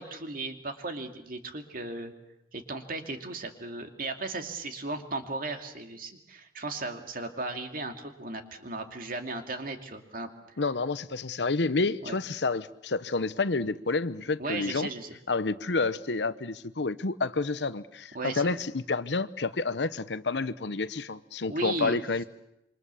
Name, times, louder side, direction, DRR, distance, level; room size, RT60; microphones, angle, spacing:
voice 1, 0.0-2.1 2.5-10.3 12.0-12.2 14.4-15.2 18.1-18.6 21.5-22.0, right 2 dB, 50° right, 5 dB, 2.6 m, -36 dB
voice 2, 10.6-14.9 15.3-22.2, left 3 dB, 75° left, 14 dB, 0.9 m, -29 dB
27.0 x 24.5 x 7.0 m, 0.84 s
head